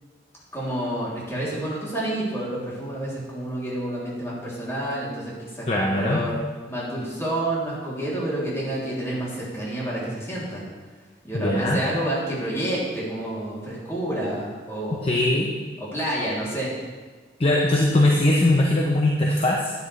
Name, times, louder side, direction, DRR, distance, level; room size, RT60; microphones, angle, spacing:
voice 1, 0.5-6.3 6.7-10.6 11.2-15.1 15.8-16.7, right 1 dB, 15° left, -7 dB, 3.1 m, -29 dB
voice 2, 5.7-6.2 11.3-11.8 15.0-15.5 17.4-19.7, left 1 dB, 30° left, -1 dB, 0.9 m, -20 dB
11.5 x 9.8 x 3.3 m, 1.4 s
head